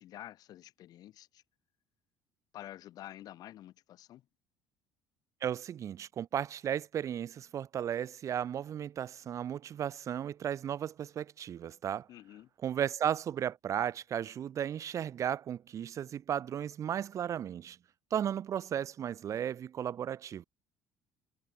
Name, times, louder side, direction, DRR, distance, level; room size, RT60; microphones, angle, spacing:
voice 1, 0.0-1.4 2.5-4.3 12.1-12.5, left 13 dB, 60° left, 2.6 m, -49 dB
voice 2, 5.4-12.1 12.6-17.8 18.1-20.4, right 9 dB, 45° right, 1.3 m, -35 dB
cardioid pair, 115°, 7 cm